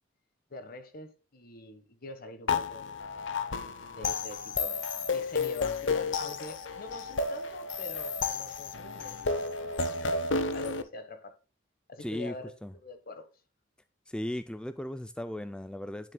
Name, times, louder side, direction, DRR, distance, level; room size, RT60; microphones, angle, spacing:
voice 1, 0.5-2.9 3.9-10.1 10.5-11.4 11.9-13.3, left 2 dB, 50° left, 1.3 m, -45 dB
sound 1, 2.5-10.8, left 4 dB, 70° left, 0.8 m, -32 dB
voice 2, 12.0-12.3 12.6-12.7 14.1-16.1, left 1 dB, 5° left, 0.4 m, -36 dB
9.9 x 7.6 x 2.2 m
head